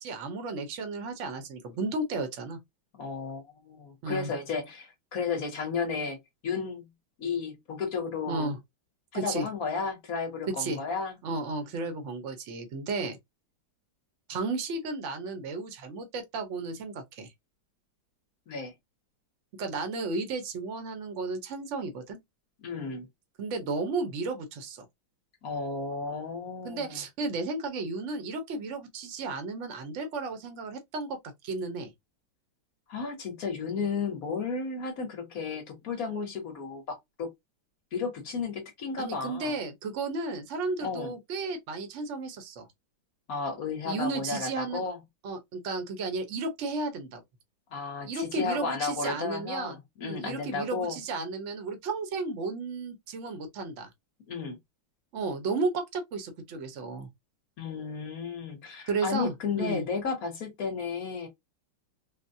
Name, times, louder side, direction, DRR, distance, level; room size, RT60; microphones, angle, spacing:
voice 1, 0.0-2.6 4.0-4.3 8.3-8.6 9.1-9.5 10.5-10.8 11.2-13.2 14.3-17.3 19.6-22.2 23.4-24.8 26.6-31.2 31.4-31.9 39.0-42.7 43.8-44.8 45.2-47.2 48.0-53.9 55.1-57.1 58.9-59.8, right 3 dB, 55° right, 0.8 m, -33 dB
voice 2, 2.9-6.2 6.4-6.9 7.2-8.5 9.1-11.1 11.5-11.7 18.5-18.7 22.6-23.1 25.4-27.0 32.9-37.3 37.9-39.5 40.8-41.1 43.3-45.0 47.7-51.0 54.3-54.6 57.6-61.3, left 5 dB, 55° left, 1.2 m, -33 dB
3.9 x 2.1 x 2.6 m
omnidirectional pair, 2.1 m